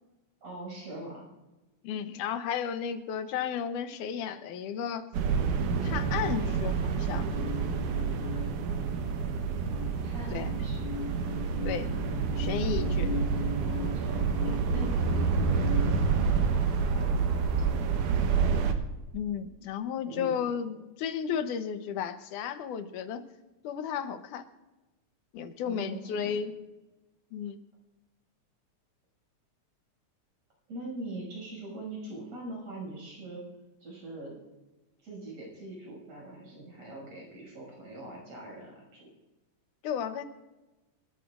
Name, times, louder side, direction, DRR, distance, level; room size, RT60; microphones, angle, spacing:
voice 1, 0.4-1.3 10.0-10.9 13.6-16.0 16.3-16.5 16.8-17.8 20.0-20.4 25.6-26.4 30.7-33.4 33.8-34.3 35.0-39.1, right 2 dB, 60° right, -2 dB, 7.5 m, -42 dB
voice 2, 1.8-5.1 5.8-7.3 10.3-10.5 11.6-11.9 12.4-13.1 19.1-23.2 23.6-24.4 25.3-26.5 27.3-27.6 39.8-40.2, left 8 dB, 90° left, 9 dB, 2.5 m, -33 dB
sound 1, 5.1-18.7, right 5 dB, 85° right, 2.6 m, -28 dB
sound 2, 7.1-9.2 9.5-15.9, left 7 dB, 70° left, 3.0 m, -40 dB
26.5 x 13.5 x 2.5 m, 1.1 s
omnidirectional pair, 3.5 m